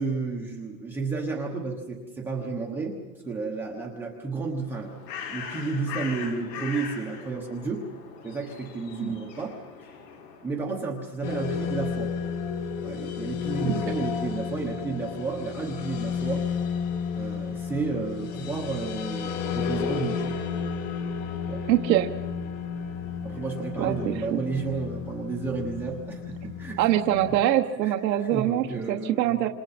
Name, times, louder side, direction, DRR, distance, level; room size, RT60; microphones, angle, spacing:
voice 1, 0.0-3.0 3.2-7.8 8.2-10.0 10.4-12.1 12.8-16.5 17.2-20.4 21.5-21.6 23.2-26.9 27.8-29.5, right 4 dB, 5° right, -3 dB, 1.0 m, -32 dB
Bird, 4.5-10.6, left 7 dB, 75° left, 6.1 m, -40 dB
sound 1, 11.2-27.4, left 6 dB, 45° left, 2.2 m, -32 dB
voice 2, 21.7-22.1 23.8-24.4 26.8-29.5, right 12 dB, 80° right, 5 dB, 1.3 m, -24 dB
28.5 x 27.0 x 4.3 m, 1.4 s
supercardioid pair, 175°, 50 cm